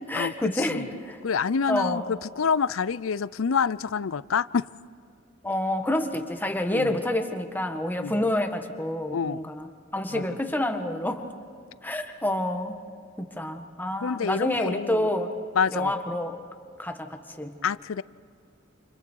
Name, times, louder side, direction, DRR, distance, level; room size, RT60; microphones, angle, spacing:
voice 1, 0.0-1.2 1.7-2.1 5.4-11.3 11.8-12.8 13.2-15.3 15.7-16.4 16.8-17.6, left 1 dB, 10° left, 5 dB, 1.7 m, -28 dB
voice 2, 1.2-4.7 6.7-7.0 8.0-8.3 9.1-9.4 10.1-10.2 14.0-15.1 15.6-15.9 17.6-18.0, left 6 dB, 85° left, 19 dB, 0.5 m, -27 dB
29.5 x 28.5 x 4.7 m, 2.3 s
head